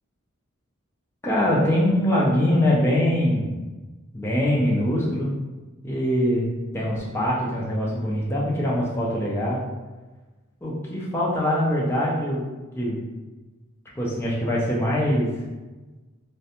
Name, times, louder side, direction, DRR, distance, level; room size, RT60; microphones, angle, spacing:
voice 1, 1.2-3.5 4.1-5.3 5.8-6.5 6.7-9.6 10.6-12.4 12.7-13.0 14.0-15.3, left 1 dB, 10° left, -5 dB, 0.4 m, -23 dB
2.5 x 2.2 x 2.8 m, 1.2 s
head